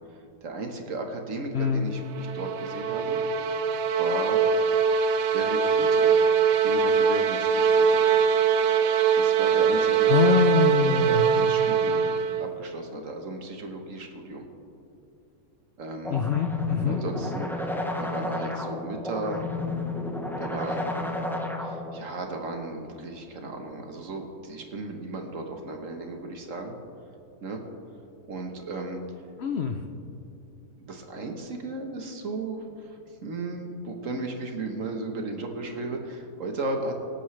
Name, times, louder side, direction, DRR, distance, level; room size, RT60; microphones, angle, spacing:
voice 1, 0.4-3.2 4.0-4.4 5.3-6.2 6.6-8.2 9.1-10.4 10.8-12.1 12.4-14.5 15.8-16.2 16.8-19.5 20.4-20.9 21.6-26.7 27.4-27.6 28.3-29.0 30.8-36.9, right 3 dB, 55° right, 4 dB, 1.4 m, -35 dB
voice 2, 1.5-1.9 10.1-11.3 16.1-17.0 29.4-29.8, left 7 dB, 65° left, 6 dB, 0.6 m, -24 dB
sound 1, 2.0-12.5, right 6 dB, 70° right, 0.6 m, -22 dB
sound 2, 16.0-22.0, left 2 dB, 5° left, 0.3 m, -31 dB
24.0 x 8.5 x 3.2 m, 2.6 s
omnidirectional pair, 1.8 m